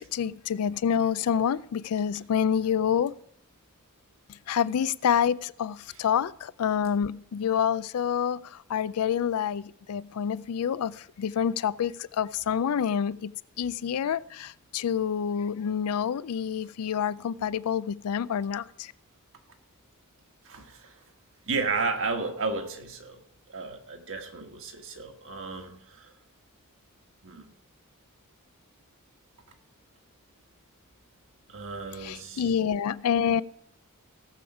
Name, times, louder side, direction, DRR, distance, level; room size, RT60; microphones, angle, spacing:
voice 1, 0.0-3.1 4.5-18.9 32.0-33.4, left 8 dB, 75° left, 0.4 m, -27 dB
voice 2, 20.4-21.0 21.5-23.2 23.5-26.1 27.2-27.5 31.5-32.5, right 4 dB, 60° right, 1.5 m, -33 dB
17.5 x 7.1 x 4.8 m
head